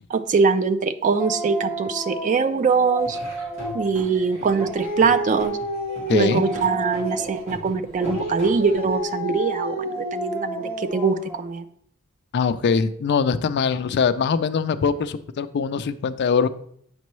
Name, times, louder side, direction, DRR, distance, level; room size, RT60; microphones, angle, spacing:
voice 1, 0.1-3.2 3.7-5.6 6.1-11.6, right 5 dB, 35° right, 12 dB, 0.3 m, -22 dB
Dog, 1.2-4.0 4.4-7.5 8.0-11.5, equal, 10° right, 0.8 m, -30 dB
Laughter / Drum, 3.0-9.0, left 1 dB, 65° right, 2.6 m, -39 dB
voice 2, 6.1-6.4 12.3-16.5, left 5 dB, 50° left, 11 dB, 0.4 m, -22 dB
8.1 x 5.2 x 3.1 m, 0.66 s
head